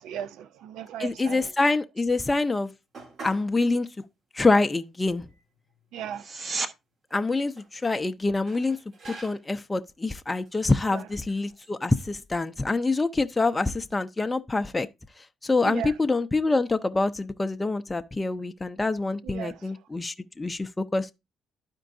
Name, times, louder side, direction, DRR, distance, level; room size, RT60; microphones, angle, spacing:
voice 1, 0.0-1.5 5.9-6.3 10.9-11.1 15.6-15.9 19.2-19.7, right 10 dB, 85° right, 0.4 m, -36 dB
voice 2, 1.0-2.7 3.2-3.9 4.3-5.3 7.1-8.8 9.2-14.9 15.4-21.1, left 3 dB, 20° left, 0.5 m, -26 dB
sound 1, 2.9-3.6 3.9-4.0 4.8-4.9 5.3-6.2 7.1-7.7 8.5-9.6 10.4-10.6 11.3-11.7, right 3 dB, 60° right, 1.7 m, -46 dB
sound 2, 6.1-6.7 18.1-18.2, right 3 dB, 40° right, 0.8 m, -32 dB
12.0 x 4.5 x 2.5 m
cardioid pair, 90°, 0 cm